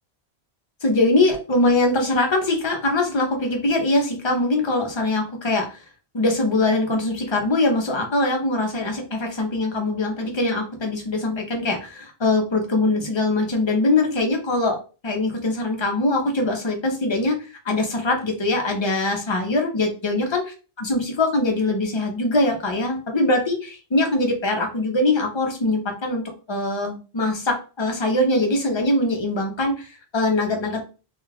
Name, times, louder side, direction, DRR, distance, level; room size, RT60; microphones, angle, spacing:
voice 1, 0.8-5.8 6.1-14.8 15.0-17.4 17.6-20.4 20.8-26.2 26.5-30.8, left 2 dB, 35° left, 2 dB, 0.6 m, -22 dB
2.3 x 2.3 x 3.2 m, 0.34 s
omnidirectional pair, 1.1 m